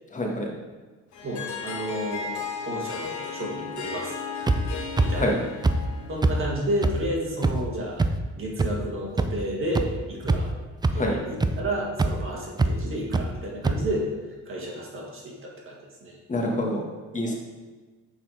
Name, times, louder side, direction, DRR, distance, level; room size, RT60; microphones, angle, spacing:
voice 1, 0.1-0.5 5.1-5.3 10.9-11.1 16.3-16.8 17.1-17.3, left 1 dB, 25° left, 0 dB, 1.5 m, -26 dB
Harp, 1.1-6.9, left 5 dB, 75° left, 1.2 m, -35 dB
voice 2, 1.2-2.3 2.7-4.1 5.0-5.3 6.1-8.0 8.4-10.5 10.9-14.1 14.5-15.8 16.0-16.2, right 1 dB, 45° right, -2 dB, 1.9 m, -31 dB
sound 1, 4.5-4.6 5.0-5.1 5.6-5.7 6.2-6.3 6.8-6.9 7.4-7.5 8.0-8.1 8.6-8.7 9.2-9.3 9.7-9.8 10.2-10.5 10.8-10.9 11.4-11.5 12.0-12.1 12.6-12.7 13.1-13.2 13.6-13.7, right 3 dB, 15° right, 0.4 m, -21 dB
6.3 x 4.3 x 4.8 m, 1.3 s
cardioid pair, 90°, 30 cm